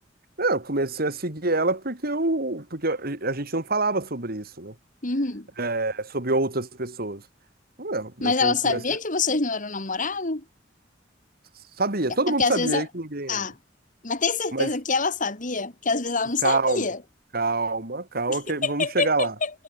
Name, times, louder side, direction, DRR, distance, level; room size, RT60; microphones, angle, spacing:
voice 1, 0.4-4.7 5.6-7.2 7.8-9.0 11.8-13.5 14.5-14.7 16.4-16.9 17.3-19.3, right 2 dB, 55° right, 3.2 m, -26 dB
voice 2, 5.0-5.5 8.2-10.4 12.3-12.8 13.3-13.5 14.0-17.0 18.3-19.5, left 4 dB, 45° left, 2.9 m, -26 dB
head